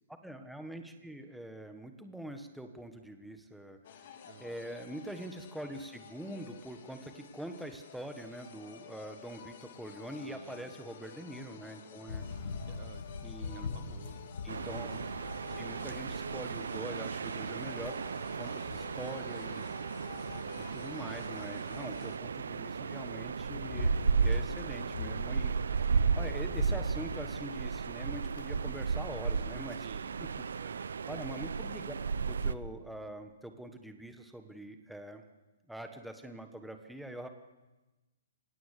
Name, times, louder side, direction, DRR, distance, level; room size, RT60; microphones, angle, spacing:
voice 1, 0.2-12.5 13.2-13.8 14.4-15.0 15.6-18.0 18.3-19.7 20.6-29.9 31.1-31.9 32.2-35.2 35.7-37.3, right 1 dB, ahead, 6 dB, 1.4 m, -44 dB
sound 1, 3.8-22.2, left 8 dB, 45° left, 2.8 m, -52 dB
voice 2, 4.2-4.6 10.2-10.8 12.2-13.0 13.4-14.3 29.8-30.2 30.6-31.0, right 11 dB, 35° right, 12 dB, 1.2 m, -53 dB
sound 2, 12.1-29.1, left 4 dB, 75° left, 2.4 m, -44 dB
sound 3, 14.5-32.6, right 5 dB, 85° right, 0.9 m, -34 dB
26.0 x 17.5 x 8.3 m, 1.1 s
hypercardioid pair, 165°, 0 cm